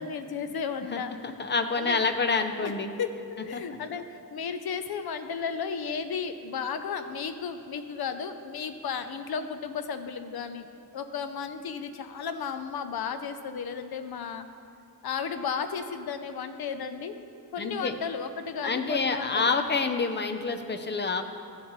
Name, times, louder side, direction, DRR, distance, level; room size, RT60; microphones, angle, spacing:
voice 1, 0.0-1.1 1.8-2.1 2.6-2.7 3.0-10.7 10.9-14.5 15.0-17.2 17.5-19.5, left 6 dB, 75° left, 9 dB, 0.7 m, -34 dB
voice 2, 0.9-2.9 3.5-3.6 17.6-17.9 18.6-21.2, left 4 dB, 30° left, 7 dB, 0.5 m, -27 dB
14.0 x 7.3 x 3.1 m, 2.6 s
wide cardioid pair, 145°, 38 cm